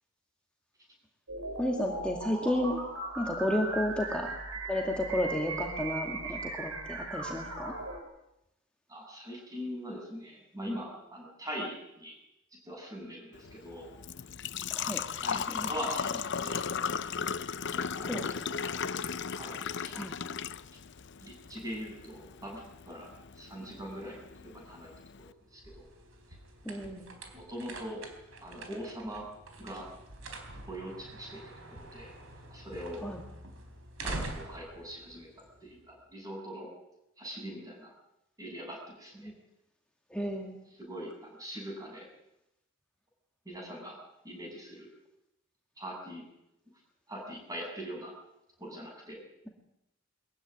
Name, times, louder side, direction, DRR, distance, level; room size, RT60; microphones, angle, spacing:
sound 1, 1.3-8.0, right 2 dB, 90° right, 6.1 m, -38 dB
voice 1, 1.6-2.8 3.2-4.3 4.7-7.7 14.7-15.0 15.5-15.7 18.1-18.3 19.9-20.1 26.7-27.1 33.0-33.2 39.2-39.3 40.1-40.6, left 1 dB, 5° left, 1 dB, 2.1 m, -32 dB
voice 2, 8.9-12.2 12.6-13.9 15.2-16.8 17.7-20.0 20.3-20.4 21.2-24.9 25.2-25.9 27.3-28.0 28.4-29.3 29.6-29.9 30.7-32.1 32.5-33.0 34.0-35.3 35.6-36.7 37.2-37.9 38.4-39.3 40.8-42.1 43.4-44.0 44.2-44.9 45.8-46.2 47.1-48.1 48.6-49.2, equal, 15° right, 0 dB, 7.9 m, -42 dB
Engine / Trickle dribble / Fill (with liquid), 13.3-25.3, left 6 dB, 55° left, 0.7 m, -36 dB
sound 2, 25.3-36.0, right 2 dB, 70° right, 3.9 m, -45 dB
22.5 x 15.0 x 9.4 m, 0.84 s
head